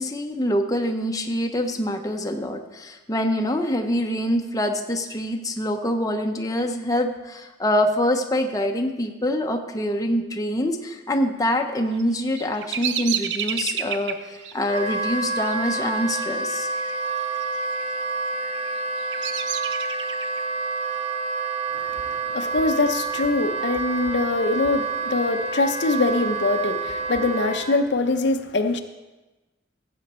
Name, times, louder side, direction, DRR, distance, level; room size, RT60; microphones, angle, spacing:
voice 1, 0.0-16.7, left 1 dB, 20° left, 4 dB, 0.7 m, -25 dB
Bird vocalization bird call bird song, 11.9-17.0 17.2-17.8 18.4-20.4, right 8 dB, 70° right, 0.6 m, -31 dB
Wind instrument woodwind instrument, 14.6-27.8, right 3 dB, 35° right, 0.9 m, -28 dB
voice 2, 21.7-28.8, left 2 dB, 65° left, 7 dB, 0.7 m, -23 dB
15.5 x 7.8 x 4.3 m, 1.1 s
head